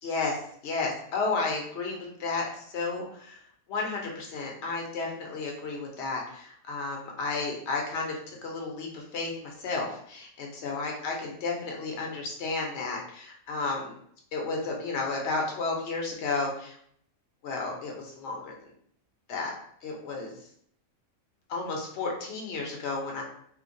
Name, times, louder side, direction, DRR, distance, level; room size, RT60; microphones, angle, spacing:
voice 1, 0.0-3.4 3.7-14.0 14.3-16.8 17.4-18.5 19.3-19.5 19.8-20.3 21.5-23.2, left 3 dB, 60° left, 0 dB, 0.9 m, -32 dB
2.8 x 2.1 x 2.5 m, 0.64 s
omnidirectional pair, 1.4 m